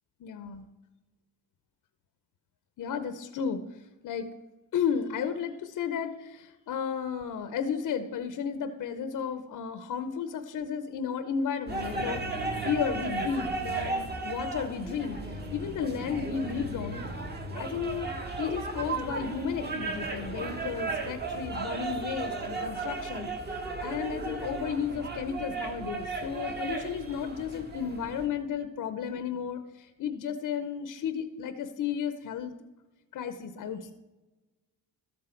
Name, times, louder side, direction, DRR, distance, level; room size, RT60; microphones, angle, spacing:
voice 1, 0.2-0.7 2.8-3.6 4.0-4.3 4.7-12.2 12.6-15.2 15.5-17.1 17.5-23.3 23.8-32.6 33.1-33.9, left 7 dB, 55° left, 9 dB, 0.8 m, -33 dB
sound 1, 11.7-28.3, right 3 dB, 25° right, 1.4 m, -35 dB
13.0 x 7.7 x 4.4 m, 1.1 s
cardioid pair, 140°, 38 cm